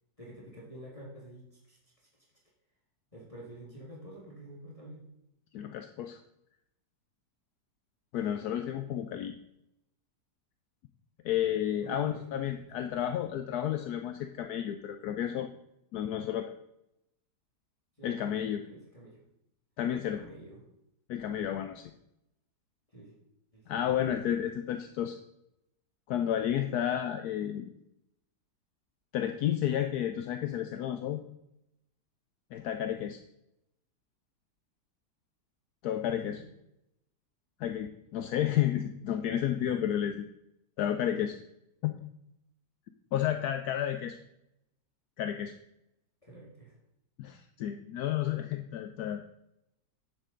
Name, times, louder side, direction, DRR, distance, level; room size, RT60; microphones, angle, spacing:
voice 1, 0.2-2.1 3.1-5.0 8.8-8.9 11.8-12.5 13.2-13.3 18.0-19.2 20.0-20.6 22.9-23.2 23.5-23.9 36.0-36.5 46.2-46.8, right 1 dB, 20° left, -4 dB, 1.9 m, -48 dB
voice 2, 5.5-6.2 8.1-9.3 11.2-15.5 15.9-16.5 18.0-18.6 19.8-20.2 21.1-21.9 23.7-25.2 26.1-27.7 29.1-31.2 32.5-33.2 35.8-36.4 37.6-40.3 40.8-41.4 41.8-41.9 43.1-44.2 45.2-45.5 47.2-49.3, left 10 dB, 75° left, 7 dB, 1.1 m, -31 dB
10.0 x 7.5 x 3.8 m, 0.83 s
omnidirectional pair, 1.8 m